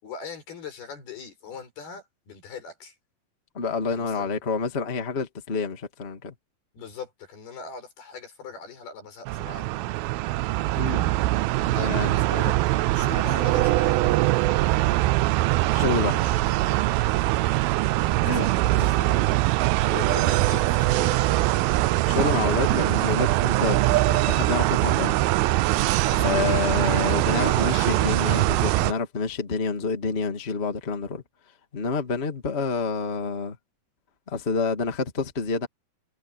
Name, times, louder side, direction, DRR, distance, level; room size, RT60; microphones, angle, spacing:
voice 1, 0.0-2.9 3.9-4.4 6.7-9.7 11.7-12.6 12.9-14.1 17.4-17.6 18.1-19.4 19.9-21.5 26.1-28.2, left 6 dB, 85° left, 8.0 m, -40 dB
voice 2, 3.5-6.3 10.8-11.0 11.7-12.2 15.7-16.5 18.2-18.4 18.8-18.9 22.0-25.1 26.2-31.2 31.7-33.6 34.3-35.7, left 4 dB, 20° left, 1.9 m, -28 dB
sound 1, 9.3-28.9, right 18 dB, 85° right, 2.5 m, -22 dB
omnidirectional pair, 4.3 m